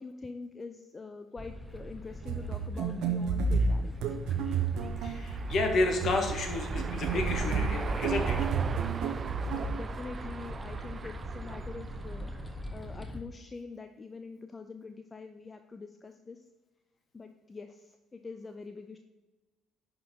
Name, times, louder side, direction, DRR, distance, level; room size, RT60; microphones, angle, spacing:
voice 1, 0.0-3.9 9.5-16.4 17.1-19.0, left 4 dB, 30° left, 8 dB, 0.5 m, -44 dB
sound 1, 1.4-13.2, equal, 5° left, 1.3 m, -41 dB
sound 2, 2.2-9.9, right 5 dB, 70° right, 0.8 m, -32 dB
sound 3, 3.9-13.1, right 5 dB, 40° right, 0.4 m, -39 dB
voice 2, 5.0-8.5, left 2 dB, 55° left, 4 dB, 1.5 m, -31 dB
11.0 x 4.7 x 3.9 m, 1.1 s
hypercardioid pair, 50°, 0 cm